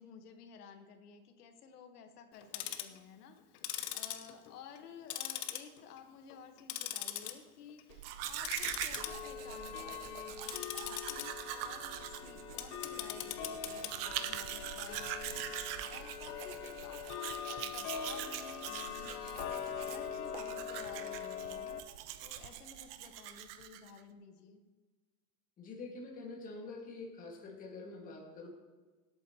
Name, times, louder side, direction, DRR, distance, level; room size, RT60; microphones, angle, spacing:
voice 1, 0.0-3.6 3.9-21.8 22.2-24.6, left 6 dB, 85° left, 7 dB, 1.3 m, -54 dB
Tick-tock, 2.3-3.0 3.5-4.8 5.1-6.0 6.3-7.3 7.7-8.0 8.4-21.8, left 10 dB, 50° left, 0.8 m, -42 dB
Domestic sounds home sounds, 7.9-24.0, right 11 dB, 40° right, 0.5 m, -43 dB
voice 2, 25.6-28.5, left 3 dB, 20° left, -1 dB, 1.7 m, -46 dB
17.5 x 8.6 x 2.8 m, 1.3 s
supercardioid pair, 160°, 45 cm